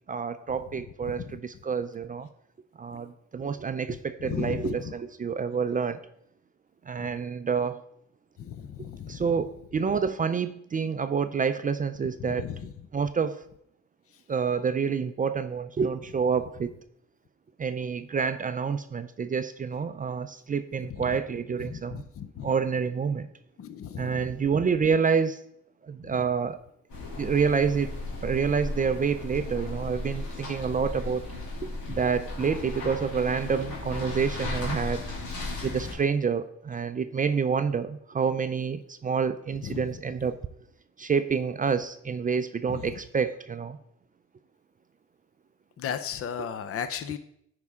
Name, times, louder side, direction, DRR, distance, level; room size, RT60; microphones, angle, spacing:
voice 1, 0.1-2.3 2.8-6.0 6.9-7.8 9.1-12.5 12.9-13.4 14.3-16.7 17.6-22.0 22.4-23.3 23.9-25.4 25.8-26.6 27.2-27.9 28.2-31.3 31.6-35.0 35.6-40.4 41.0-43.8, right 6 dB, 30° right, 11 dB, 0.4 m, -28 dB
voice 2, 4.2-4.7 8.4-9.2 12.4-12.7 21.0-21.1 21.7-22.5 23.6-24.1 39.6-39.8 42.7-42.9 45.8-47.2, left 8 dB, 50° left, 11 dB, 0.6 m, -35 dB
sound 1, 26.9-35.9, left 2 dB, 85° left, 2.7 m, -35 dB
9.4 x 4.8 x 3.6 m, 0.73 s
cardioid pair, 90°, 30 cm